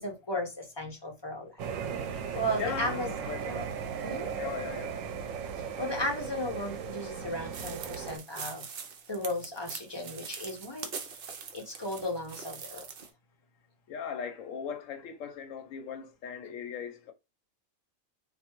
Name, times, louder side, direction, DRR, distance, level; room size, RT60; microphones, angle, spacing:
voice 1, 0.0-1.6 2.1-3.1 3.4-3.6 4.0-4.3 5.8-8.7 9.1-10.9 11.3-12.8, left 1 dB, 25° left, 0.8 m, -35 dB
sound 1, 1.6-8.2, right 7 dB, 80° right, 1.0 m, -37 dB
voice 2, 2.6-3.4 4.4-5.0 13.9-17.1, left 7 dB, 75° left, 1.0 m, -38 dB
sound 2, 7.5-13.1, right 6 dB, 55° right, 0.7 m, -43 dB
3.4 x 2.5 x 2.9 m
omnidirectional pair, 1.4 m